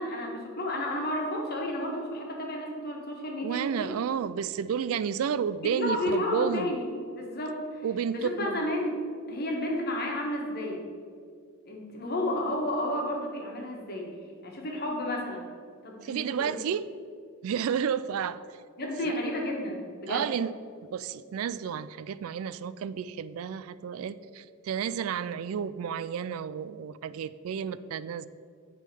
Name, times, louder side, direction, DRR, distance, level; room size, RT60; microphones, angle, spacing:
voice 1, 0.0-3.9 5.6-6.9 7.1-7.8 8.1-9.0 9.3-10.8 11.6-14.1 14.4-15.4 15.8-16.6 18.8-20.3, left 1 dB, 45° left, 0 dB, 1.5 m, -32 dB
voice 2, 3.4-6.7 7.8-8.7 16.0-16.9 17.4-18.4 19.1-19.2 20.1-20.5 20.9-28.3, right 7 dB, 75° right, 15 dB, 0.3 m, -31 dB
9.0 x 3.8 x 6.8 m, 2.2 s
head